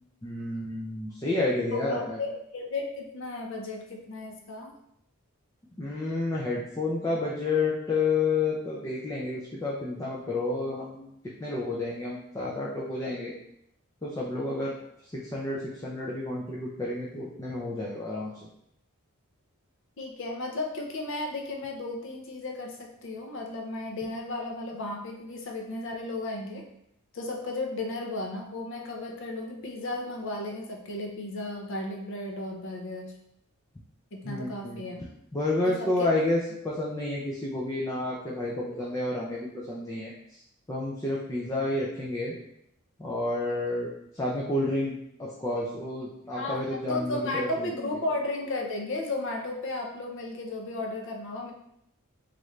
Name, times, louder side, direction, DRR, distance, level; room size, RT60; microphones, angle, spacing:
voice 1, 0.2-2.2 5.8-11.1 11.4-13.3 14.0-14.7 15.1-18.3 34.2-34.8 35.3-40.1 40.7-42.3 43.0-43.9 44.1-44.9 45.2-47.9, left 2 dB, 15° left, -5 dB, 0.4 m, -30 dB
voice 2, 1.7-4.8 20.0-26.6 27.1-33.1 34.1-35.0 35.6-36.1 46.4-51.5, left 2 dB, 60° left, 1 dB, 0.6 m, -34 dB
3.1 x 2.5 x 3.1 m, 0.76 s
head